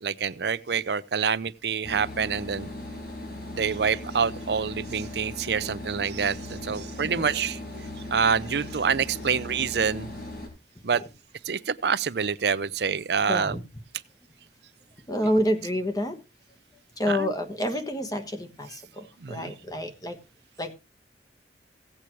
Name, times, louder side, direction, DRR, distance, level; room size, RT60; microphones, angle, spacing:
voice 1, 0.0-2.7 3.6-7.6 8.1-10.1 10.8-11.0 11.5-13.6 17.1-17.3 19.2-19.5, right 6 dB, 70° right, 0.6 m, -26 dB
sound 1, 1.8-10.5, left 1 dB, 60° left, 4.7 m, -38 dB
voice 2, 7.0-7.5 10.9-11.1 13.3-13.6 15.1-16.2 17.0-20.2 20.6-20.7, equal, 20° left, 1.3 m, -29 dB
16.5 x 8.5 x 3.1 m
head